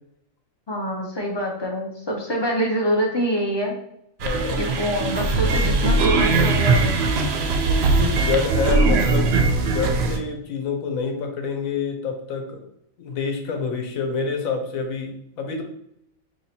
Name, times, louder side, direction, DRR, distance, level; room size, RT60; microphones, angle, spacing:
voice 1, 0.7-3.7 4.6-6.9, equal, 45° left, 0 dB, 0.3 m, -25 dB
voice 2, 4.2-4.9 7.6-9.3 9.6-12.6 13.0-15.6, left 5 dB, 80° left, 4 dB, 1.1 m, -27 dB
sound 1, 4.2-10.2, right 3 dB, 65° right, 0.7 m, -20 dB
3.2 x 2.8 x 4.2 m, 0.76 s
omnidirectional pair, 1.4 m